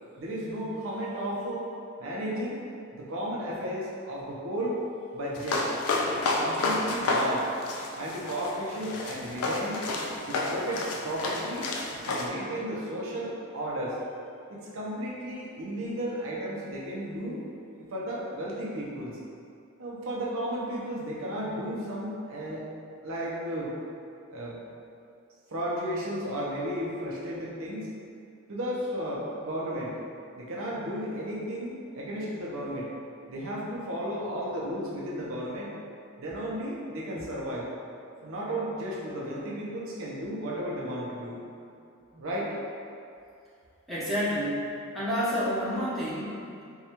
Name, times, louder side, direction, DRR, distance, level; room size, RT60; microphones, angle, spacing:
voice 1, 0.2-1.7 2.0-2.6 2.9-4.8 5.1-5.7 6.1-7.5 7.9-9.9 10.3-11.7 12.0-14.0 14.5-17.4 17.8-19.2 19.8-22.7 23.0-23.7 24.3-24.6 25.5-27.9 28.5-30.0 30.4-32.9 33.3-35.7 36.2-37.7 38.2-41.4 42.1-42.5, equal, 65° right, -5 dB, 0.6 m, -34 dB
Going downstairs, 5.3-12.3, left 2 dB, 90° left, 0.4 m, -30 dB
voice 2, 43.9-44.7 44.9-46.6, equal, ahead, -11 dB, 0.7 m, -29 dB
4.6 x 2.3 x 2.8 m, 2.5 s
head